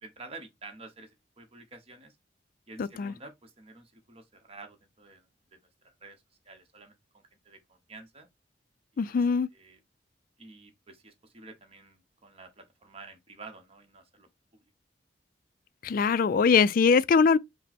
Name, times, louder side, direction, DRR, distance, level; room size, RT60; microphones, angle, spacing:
voice 1, 0.0-2.1 2.7-8.3 8.9-9.1 9.5-9.8 10.4-14.3, right 3 dB, 35° right, 1.0 m, -50 dB
voice 2, 2.8-3.1 9.0-9.5 15.8-17.4, left 5 dB, 50° left, 0.3 m, -22 dB
5.2 x 2.1 x 4.3 m
head